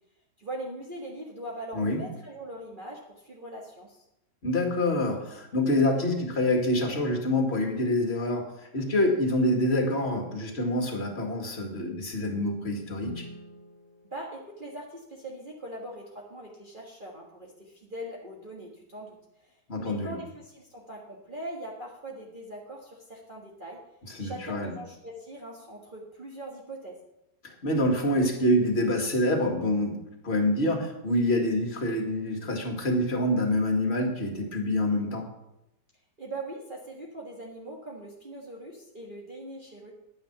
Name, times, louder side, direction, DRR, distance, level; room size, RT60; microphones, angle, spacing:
voice 1, 0.4-4.0 14.0-19.2 19.4-23.8 24.2-27.0 36.2-39.9, right 1 dB, 30° right, -3 dB, 1.6 m, -41 dB
voice 2, 4.4-13.2 19.7-20.2 24.1-24.7 27.6-35.3, left 1 dB, 35° left, 3 dB, 2.1 m, -26 dB
Guitar, 13.0-15.6, left 3 dB, 10° left, 2.0 m, -47 dB
10.0 x 9.5 x 5.8 m, 0.87 s
omnidirectional pair, 1.8 m